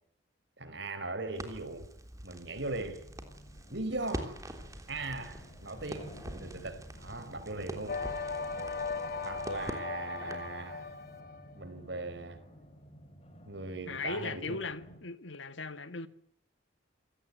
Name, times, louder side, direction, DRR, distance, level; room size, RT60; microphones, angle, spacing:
voice 1, 0.6-1.9 2.2-3.0 3.7-4.4 4.9-8.0 9.0-10.9 11.5-12.4 13.4-14.6, right 2 dB, 65° right, 4.7 m, -39 dB
Crackle, 1.3-10.6, right 1 dB, 20° right, 3.4 m, -45 dB
sound 1, 2.4-15.0, equal, 30° left, 3.9 m, -54 dB
sound 2, 7.9-11.5, left 4 dB, 50° left, 1.7 m, -38 dB
voice 2, 13.8-16.1, left 3 dB, 80° left, 1.7 m, -38 dB
27.5 x 18.0 x 9.5 m
head